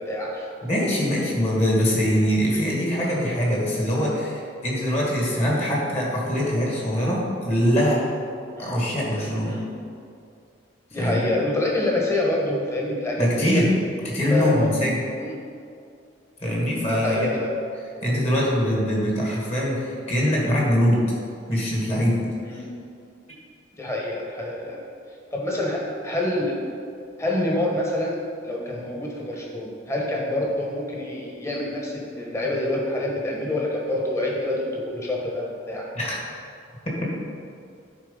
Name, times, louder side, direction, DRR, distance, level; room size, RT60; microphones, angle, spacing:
voice 1, 0.0-0.5 8.5-8.7 9.5-9.7 10.9-13.6 14.3-14.7 15.2-15.3 16.6-17.5 22.4-22.7 23.8-24.8 25.3-26.6 27.2-35.9, left 1 dB, 15° left, -2 dB, 1.3 m, -27 dB
voice 2, 0.6-8.0 8.6-9.6 11.0-11.3 13.2-13.7 14.0-15.0 16.4-17.3 18.0-21.0 21.5-22.2 36.0-36.2, equal, 35° left, -4 dB, 2.0 m, -23 dB
11.0 x 4.4 x 5.4 m, 2.4 s
head